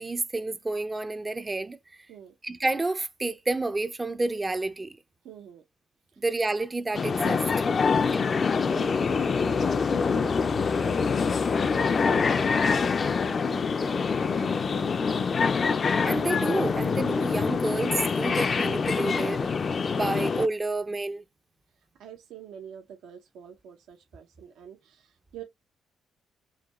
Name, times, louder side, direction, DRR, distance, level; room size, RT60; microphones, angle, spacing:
voice 1, 0.0-1.8 2.4-5.0 6.2-7.4 7.9-8.2 16.1-19.5 19.9-21.2, right 2 dB, 20° right, 0.4 m, -29 dB
voice 2, 5.2-5.6 8.7-15.3 22.0-25.4, right 9 dB, 85° right, 0.8 m, -46 dB
sound 1, 6.9-20.5, left 5 dB, 40° left, 0.4 m, -25 dB
5.0 x 2.2 x 3.0 m
cardioid pair, 90°, 0 cm